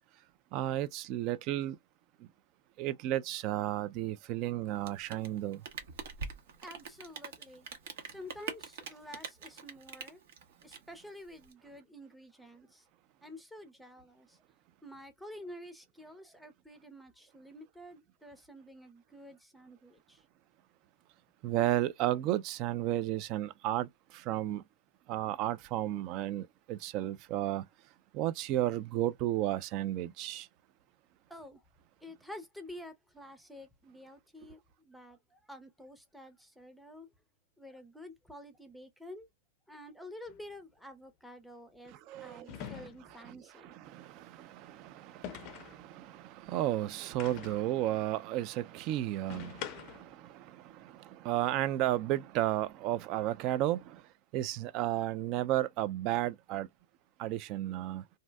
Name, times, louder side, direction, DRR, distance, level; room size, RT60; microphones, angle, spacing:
voice 1, 0.5-1.8 2.2-2.3 2.8-5.6 21.4-24.6 25.1-27.7 28.1-30.5 41.9-42.8 43.2-56.7 57.2-58.0, right 13 dB, 40° right, 0.3 m, -33 dB
Rain, 4.7-11.5, right 5 dB, 70° right, 0.9 m, -44 dB
voice 2, 6.6-7.7 8.1-10.2 10.6-12.8 13.2-14.4 14.8-20.2 31.3-31.6 32.0-37.1 37.6-39.3 39.7-41.9 42.2-43.7, left 1 dB, ahead, 0.6 m, -50 dB
sound 1, 40.3-40.4 42.5-43.2 45.2-45.8 47.2-47.7 49.3-50.1, left 10 dB, 40° left, 0.4 m, -44 dB
2.6 x 2.1 x 3.3 m
hypercardioid pair, 135°, 0 cm